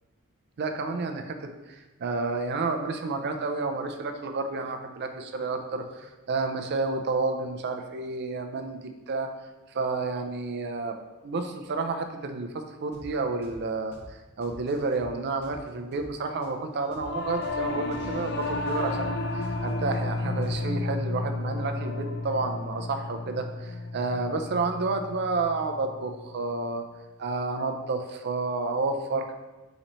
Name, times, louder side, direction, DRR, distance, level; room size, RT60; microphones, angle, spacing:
voice 1, 0.6-9.3 9.7-11.0 11.2-26.8 27.2-29.3, right 3 dB, 50° right, 5 dB, 0.4 m, -30 dB
sound 1, 12.9-13.1 13.4-13.6 13.9-14.1 14.4-16.1 16.4-16.5 16.9-17.1 17.4-17.6 17.9-18.1 18.4-20.0 20.4-20.8, right 1 dB, 10° left, 1.3 m, -48 dB
Singing / Musical instrument, 16.9-26.5, left 2 dB, 50° left, 0.4 m, -32 dB
3.9 x 3.0 x 4.2 m, 1.1 s
head